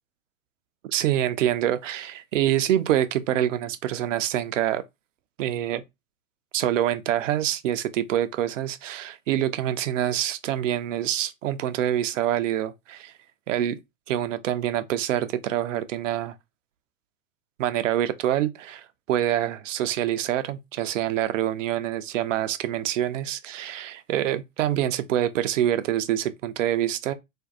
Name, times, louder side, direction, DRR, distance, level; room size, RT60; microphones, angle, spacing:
voice 1, 0.8-4.8 5.4-5.8 6.5-13.1 13.5-13.8 14.1-16.4 17.6-27.1, right 12 dB, 65° right, 0.5 m, -26 dB
2.5 x 2.2 x 2.5 m
figure-of-eight pair, 95°, 40 cm